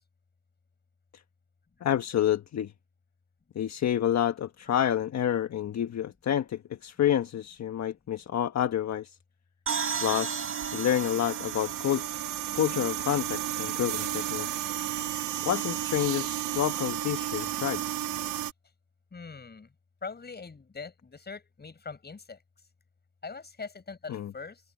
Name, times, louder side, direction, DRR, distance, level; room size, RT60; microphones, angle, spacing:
voice 1, 1.8-2.7 3.5-9.2 10.0-12.1 12.5-14.7 15.4-17.8 24.1-24.3, left 10 dB, 55° left, 1.3 m, -29 dB
sound 1, 9.7-13.3, right 6 dB, 40° right, 2.2 m, -35 dB
sound 2, 9.7-18.5, right 12 dB, 75° right, 3.0 m, -33 dB
voice 2, 19.1-19.7 20.0-22.4 23.2-24.6, left 4 dB, 30° left, 6.0 m, -42 dB
cardioid pair, 85°, 33 cm